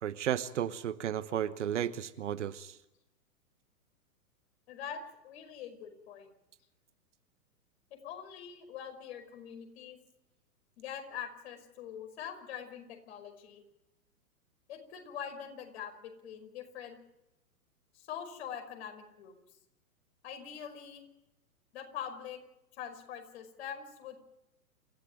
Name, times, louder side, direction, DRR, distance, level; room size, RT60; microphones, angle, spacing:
voice 1, 0.0-2.8, right 10 dB, 50° right, 13 dB, 1.2 m, -33 dB
voice 2, 4.7-6.3 7.9-10.0 10.8-13.6 14.7-17.0 17.9-19.4 20.2-21.0 21.7-22.4 22.7-24.2, left 8 dB, 45° left, 5 dB, 5.3 m, -44 dB
28.5 x 15.0 x 9.2 m, 0.92 s
figure-of-eight pair, 115°, 46 cm